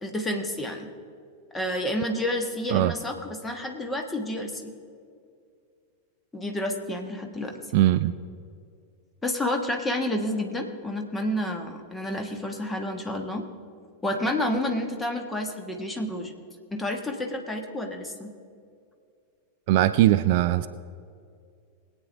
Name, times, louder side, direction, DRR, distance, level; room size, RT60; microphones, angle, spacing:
voice 1, 0.0-0.9 1.5-4.7 6.3-7.6 9.2-13.5 14.0-16.3 16.7-18.3, left 1 dB, 10° left, 3 dB, 1.5 m, -30 dB
voice 2, 7.7-8.1 19.7-20.7, right 14 dB, 50° right, 13 dB, 0.4 m, -20 dB
21.5 x 8.8 x 3.5 m, 2.3 s
figure-of-eight pair, 90°, 0 cm